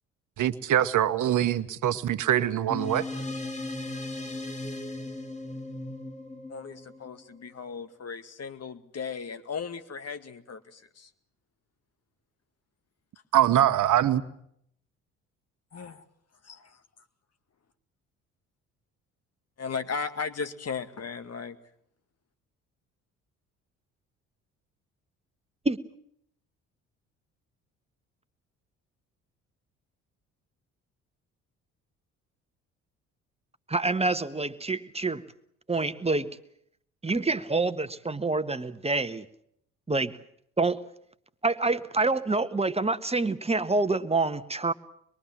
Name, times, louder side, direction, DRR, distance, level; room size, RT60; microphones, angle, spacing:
voice 1, 0.4-3.0 13.3-14.2, right 11 dB, 55° right, 11 dB, 1.3 m, -23 dB
sound 1, 2.7-7.5, left 2 dB, 20° left, 2.7 m, -37 dB
voice 2, 6.5-11.1 15.7-16.0 16.4-16.8 19.6-21.6, left 5 dB, 45° left, 10 dB, 2.1 m, -36 dB
voice 3, 33.7-35.3 35.7-36.4 37.0-39.2 39.9-40.2 40.6-40.8 41.4-44.7, right 3 dB, 15° right, 11 dB, 1.5 m, -27 dB
25.5 x 22.5 x 7.5 m, 0.70 s
hypercardioid pair, 55°, 36 cm